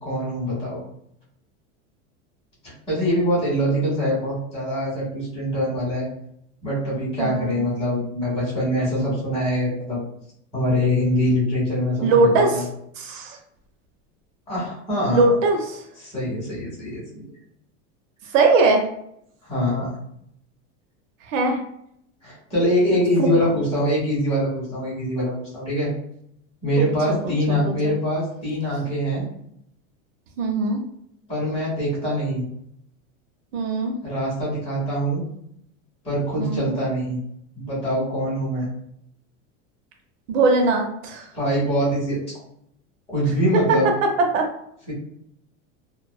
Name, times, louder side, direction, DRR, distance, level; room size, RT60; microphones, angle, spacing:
voice 1, 0.0-0.8 2.6-6.1 6.6-10.0 10.5-12.6 14.5-15.3 16.0-17.3 19.5-19.9 22.2-25.9 26.6-29.3 31.3-32.4 34.0-35.2 36.0-37.2 37.6-38.7 41.3-42.2 43.1-43.9 44.9-45.0, equal, 15° left, -7 dB, 1.4 m, -24 dB
voice 2, 7.2-7.6 12.0-12.5 13.0-13.4 15.1-15.8 18.3-18.8 21.3-21.6 23.2-23.4 26.8-26.9 27.2-27.3 27.6-27.7 30.4-30.8 33.5-33.9 36.4-36.7 40.3-41.3 43.7-44.5, right 3 dB, 85° right, 3 dB, 0.7 m, -20 dB
2.7 x 2.3 x 2.2 m, 0.72 s
supercardioid pair, 165°, 37 cm